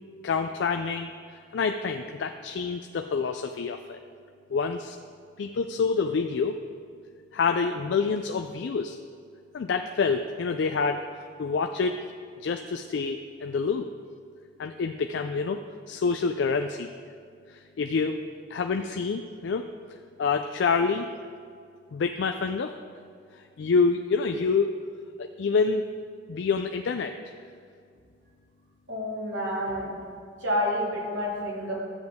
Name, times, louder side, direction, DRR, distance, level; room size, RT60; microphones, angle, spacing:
voice 1, 0.2-1.1 1.5-4.0 4.5-5.0 5.4-6.5 7.3-9.0 9.5-11.0 11.4-12.0 12.4-13.9 14.6-15.6 15.9-16.9 17.8-18.2 18.5-19.6 20.2-21.1 21.9-22.7 23.6-24.7 25.2-25.8 26.3-27.1, left 5 dB, 70° left, 6 dB, 0.4 m, -27 dB
voice 2, 28.9-29.9 30.4-31.7, equal, 80° right, -4 dB, 2.5 m, -29 dB
12.5 x 7.8 x 3.5 m, 2.3 s
head